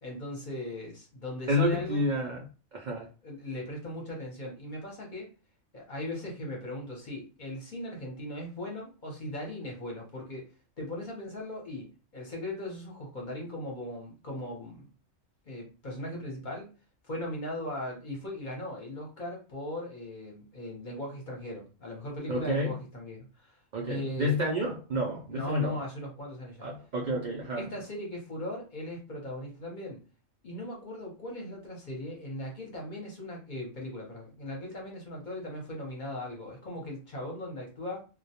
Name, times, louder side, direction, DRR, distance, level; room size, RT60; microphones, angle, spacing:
voice 1, 0.0-2.0 3.2-5.3 5.7-10.4 10.8-14.9 15.5-16.7 17.0-23.6 23.9-24.4 25.3-26.7 27.6-30.0 30.4-38.0, left 1 dB, 45° left, -1 dB, 0.7 m, -38 dB
voice 2, 1.5-2.4 2.7-3.1 22.3-22.8 23.7-25.8 26.6-27.7, left 1 dB, 85° right, -2 dB, 0.4 m, -29 dB
2.2 x 2.1 x 2.7 m, 0.34 s
omnidirectional pair, 1.3 m